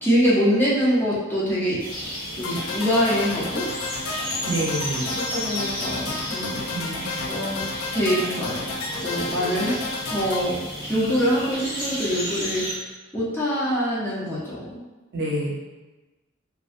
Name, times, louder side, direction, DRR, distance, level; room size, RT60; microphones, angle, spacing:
voice 1, 0.0-1.8 2.3-3.6 5.3-6.7 7.3-7.6 7.9-8.6 9.0-9.7 10.1-10.6 10.9-12.6 13.1-14.9, equal, 10° left, -8 dB, 0.5 m, -24 dB
sound 1, 1.8-12.7, equal, 45° left, 1.1 m, -33 dB
sound 2, 2.4-10.4, left 3 dB, 75° left, 0.3 m, -32 dB
voice 2, 4.4-5.1 6.7-7.1 15.1-15.5, right 1 dB, 55° right, -5 dB, 0.7 m, -27 dB
2.4 x 2.2 x 2.4 m, 1.1 s
head